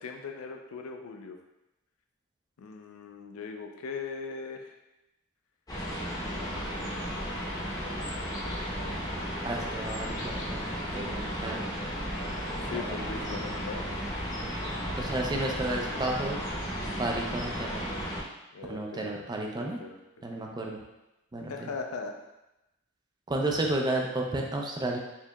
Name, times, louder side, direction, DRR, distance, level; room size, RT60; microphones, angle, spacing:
voice 1, 0.0-1.4 2.6-4.7 6.2-7.5 8.6-9.0 12.6-14.0 18.5-19.1 19.6-20.0 21.5-22.1, left 4 dB, 90° left, 3 dB, 0.4 m, -40 dB
sound 1, 5.7-18.2, equal, 15° left, 0.7 m, -34 dB
voice 2, 9.4-11.6 12.7-12.9 15.0-16.4 17.0-17.8 18.7-19.8 20.2-20.8 21.3-21.7 23.3-25.0, right 2 dB, 20° right, 1 dB, 0.4 m, -32 dB
4.3 x 2.8 x 2.3 m, 0.95 s
head